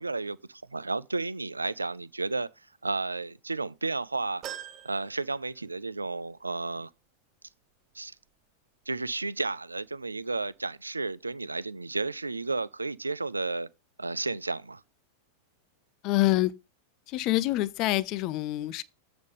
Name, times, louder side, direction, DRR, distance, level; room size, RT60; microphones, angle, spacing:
voice 1, 0.0-2.5 2.8-4.4 4.8-6.9 7.9-8.1 8.9-13.7 14.0-14.8, right 3 dB, 80° right, 0.4 m, -32 dB
sound 1, 4.4-6.1 6.5-6.6 7.8-7.9, right 10 dB, 35° right, 1.0 m, -44 dB
voice 2, 16.0-16.5 17.1-18.8, left 17 dB, 40° left, 0.6 m, -26 dB
8.0 x 5.1 x 5.1 m
figure-of-eight pair, 90°, 0 cm